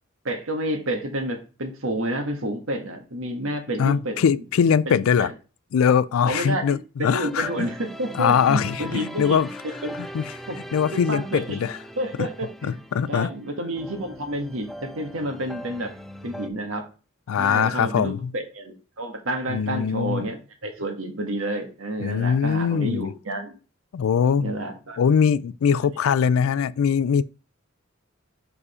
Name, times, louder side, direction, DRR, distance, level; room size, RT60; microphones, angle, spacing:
voice 1, 0.2-4.2 4.9-5.3 6.2-9.5 9.8-10.0 10.5-11.6 12.0-12.3 12.6-15.9 16.2-16.9 17.4-23.6 24.4-25.0, right 1 dB, 80° right, 1.5 m, -30 dB
voice 2, 3.8-5.3 5.7-7.7 8.1-9.5 10.0-10.2 10.7-11.8 12.2-12.3 12.6-13.3 17.3-18.3 19.5-20.2 22.0-23.1 23.9-24.5 25.0-27.2, left 7 dB, 85° left, 0.3 m, -22 dB
sound 1, 7.2-16.5, equal, ahead, 0.4 m, -40 dB
5.0 x 4.9 x 4.9 m
head